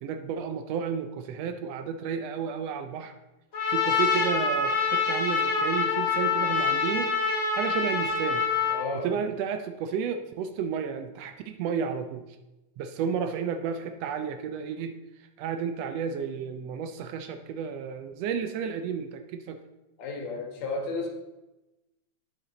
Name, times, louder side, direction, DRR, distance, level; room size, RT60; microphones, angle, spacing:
voice 1, 0.0-3.1 3.7-7.1 7.6-8.4 9.0-12.2 12.8-15.0 15.4-19.6, right 7 dB, 75° right, 8 dB, 1.5 m, -32 dB
Trumpet, 3.5-8.8, left 5 dB, 35° left, 1.6 m, -26 dB
voice 2, 8.7-9.1 20.0-21.1, left 3 dB, 70° left, 2 dB, 2.5 m, -32 dB
8.4 x 7.1 x 4.0 m, 1.0 s
omnidirectional pair, 3.3 m